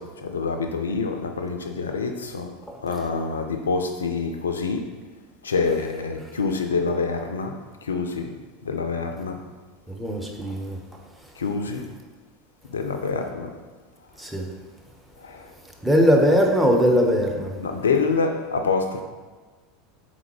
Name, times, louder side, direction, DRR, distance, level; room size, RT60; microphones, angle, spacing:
voice 1, 0.0-2.6 2.8-4.9 5.4-8.4 8.6-9.4 11.4-11.9 12.7-13.6 15.2-15.5 17.6-19.0, left 4 dB, 75° left, 0.3 m, -26 dB
voice 2, 9.9-10.8 14.2-14.5 15.8-17.6, equal, 5° right, 0.6 m, -20 dB
3.7 x 3.6 x 3.1 m
figure-of-eight pair, 80°, 0 cm